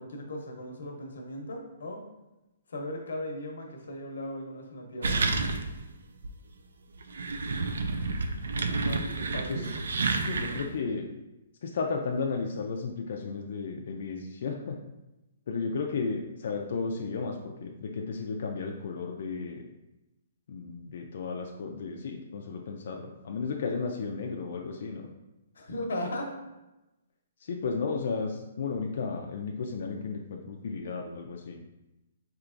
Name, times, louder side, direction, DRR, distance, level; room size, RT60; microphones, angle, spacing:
voice 1, 0.0-2.0 2.7-5.2 8.8-9.7 25.5-26.4, left 1 dB, 90° left, 2 dB, 0.8 m, -37 dB
sound 1, 5.0-5.9 6.2-6.3 7.0-10.8, right 3 dB, 80° right, 0.3 m, -30 dB
voice 2, 10.2-11.0 11.6-14.8 15.5-19.6 20.5-25.1 27.5-31.6, left 4 dB, 45° left, 1 dB, 0.3 m, -34 dB
4.5 x 2.9 x 2.5 m, 0.98 s
hypercardioid pair, 180°, 0 cm